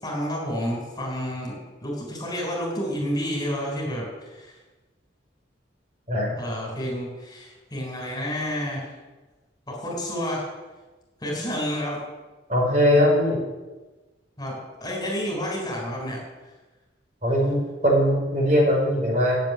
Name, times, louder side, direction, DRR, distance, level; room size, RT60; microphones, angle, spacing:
voice 1, 0.0-4.6 6.4-8.9 9.7-10.5 11.2-12.0 14.4-16.2, equal, 20° left, -2 dB, 4.1 m, -30 dB
voice 2, 12.5-13.4 17.2-19.4, equal, 40° right, -2 dB, 4.3 m, -20 dB
10.5 x 7.6 x 9.4 m, 1.2 s
head